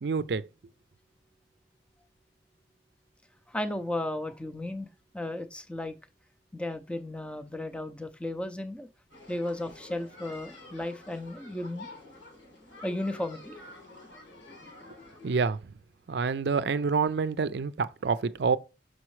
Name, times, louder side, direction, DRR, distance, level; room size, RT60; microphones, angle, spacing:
voice 1, 0.0-0.4 15.2-15.7 16.1-18.6, right 5 dB, 60° right, 0.4 m, -27 dB
voice 2, 3.5-4.9 5.1-6.0 6.5-8.9 9.3-11.9 12.8-13.5, left 1 dB, 5° left, 0.5 m, -34 dB
sound 1, 9.1-15.4, left 2 dB, 80° left, 3.4 m, -49 dB
6.3 x 6.0 x 3.2 m
head